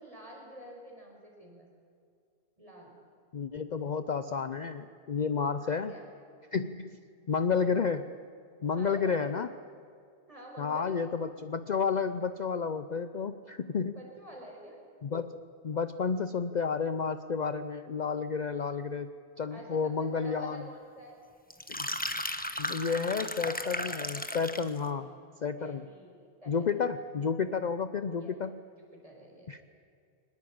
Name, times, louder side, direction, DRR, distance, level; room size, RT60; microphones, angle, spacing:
voice 1, 0.0-1.7 2.6-3.0 5.5-6.1 8.6-9.5 10.3-11.2 13.9-14.8 19.5-21.2 24.7-25.2 25.5-26.7 28.2-28.4 28.8-29.5, right 1 dB, 30° right, -1 dB, 5.5 m, -48 dB
voice 2, 3.3-5.9 6.5-6.9 7.3-8.1 8.6-9.5 10.6-13.9 15.0-19.1 19.4-20.6 21.7-21.9 22.6-25.1 25.4-25.9 26.5-28.6 29.5-29.6, left 5 dB, 45° left, 11 dB, 0.7 m, -31 dB
sound 1, 21.5-24.8, left 1 dB, 10° left, 1.1 m, -35 dB
23.0 x 20.5 x 8.7 m, 2.4 s
omnidirectional pair, 1.2 m